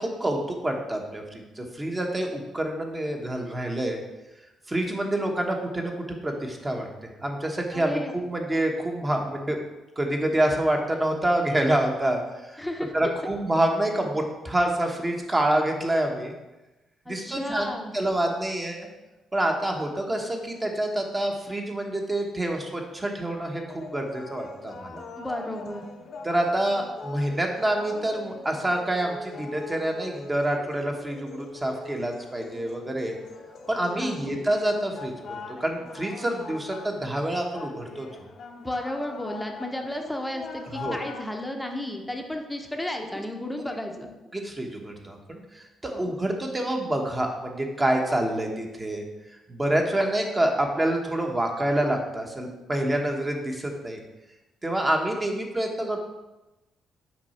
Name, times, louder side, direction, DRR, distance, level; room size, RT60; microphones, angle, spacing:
voice 1, 0.0-4.0 4.7-6.9 7.2-9.6 10.0-12.6 12.9-16.3 17.1-17.7 17.9-18.9 19.3-25.0 26.2-33.1 33.7-35.1 35.5-38.1 40.7-41.0 44.3-49.0 49.5-54.0 54.6-56.0, right 1 dB, 20° right, 2 dB, 1.1 m, -27 dB
voice 2, 7.7-8.1 12.6-12.9 17.1-17.9 25.2-25.8 34.0-34.3 38.6-44.1 45.9-46.1, left 1 dB, 5° left, 3 dB, 0.8 m, -33 dB
sound 1, 23.7-41.5, left 3 dB, 60° left, 0.7 m, -42 dB
5.9 x 4.8 x 4.2 m, 1.0 s
cardioid pair, 90°, 0 cm